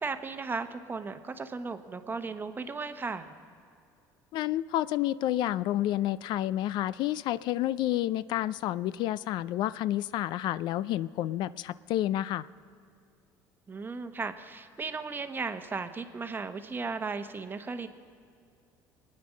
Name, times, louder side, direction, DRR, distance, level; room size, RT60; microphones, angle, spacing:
voice 1, 0.0-3.3 13.7-17.9, right 4 dB, 25° right, 9 dB, 1.0 m, -36 dB
voice 2, 4.3-12.5, left 13 dB, 65° left, 18 dB, 0.3 m, -30 dB
23.5 x 9.5 x 6.3 m, 2.4 s
supercardioid pair, 95°, 8 cm